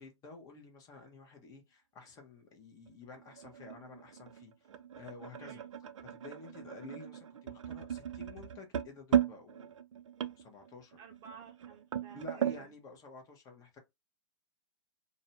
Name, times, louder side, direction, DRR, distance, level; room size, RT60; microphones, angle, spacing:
voice 1, 0.0-5.6 6.1-9.7 10.4-11.0 12.1-13.8, left 3 dB, 20° left, 0.8 m, -51 dB
sound 1, 2.9-12.6, right 9 dB, 85° right, 0.4 m, -37 dB
voice 2, 5.4-5.7 11.0-12.7, right 6 dB, 25° right, 0.6 m, -54 dB
2.5 x 2.1 x 2.8 m
hypercardioid pair, 140°, 16 cm